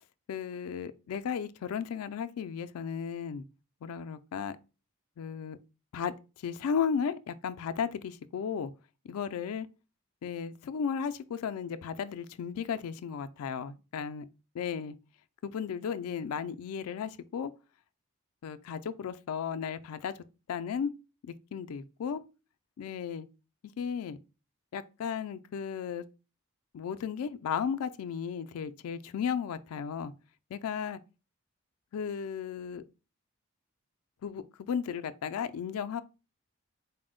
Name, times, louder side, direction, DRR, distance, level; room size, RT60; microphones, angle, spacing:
voice 1, 0.3-3.4 3.8-4.5 5.2-5.6 5.9-6.1 6.4-8.7 9.1-9.7 10.2-14.3 14.5-14.9 15.4-17.5 18.4-20.1 20.5-20.9 21.2-22.2 22.8-23.3 23.8-24.2 24.7-26.0 26.7-30.1 30.5-31.0 31.9-32.8 34.2-36.0, left 7 dB, 85° left, 0.3 m, -34 dB
4.2 x 2.0 x 3.7 m
head